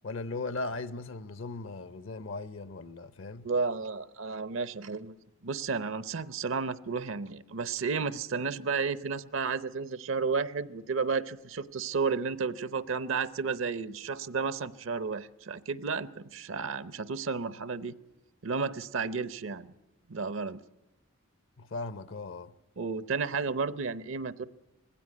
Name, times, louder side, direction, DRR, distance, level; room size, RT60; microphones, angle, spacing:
voice 1, 0.0-3.5 21.6-22.5, left 3 dB, 65° left, 0.7 m, -38 dB
voice 2, 3.4-5.2 5.4-17.9 18.4-19.7 20.1-20.6 22.8-24.5, right 5 dB, 70° right, 0.7 m, -32 dB
20.0 x 16.0 x 9.4 m
head